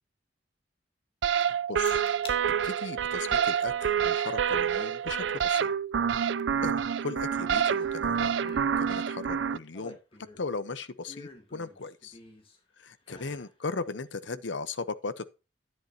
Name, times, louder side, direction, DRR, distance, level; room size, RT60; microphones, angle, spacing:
sound 1, 1.2-9.6, right 8 dB, 75° right, 0.4 m, -27 dB
voice 1, 1.5-2.0 2.6-5.7 6.6-8.3 8.8-10.0 10.4-12.2 12.8-15.3, left 4 dB, 80° left, 0.9 m, -37 dB
sound 2, 1.8-2.4 2.8-3.2 4.8-4.9 7.5-8.1 8.3-8.7 9.4-10.5 11.0-12.6 13.0-13.5 13.9-14.0, left 2 dB, 30° left, 2.9 m, -49 dB
11.5 x 10.5 x 2.8 m
head